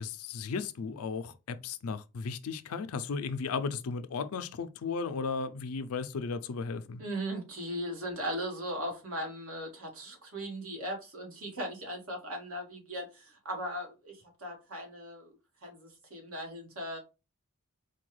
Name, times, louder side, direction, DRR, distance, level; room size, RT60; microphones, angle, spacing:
voice 1, 0.0-7.0, left 5 dB, 85° left, 0.4 m, -35 dB
voice 2, 7.0-15.4 15.6-17.0, equal, 80° right, 1.6 m, -38 dB
4.4 x 2.3 x 3.1 m
head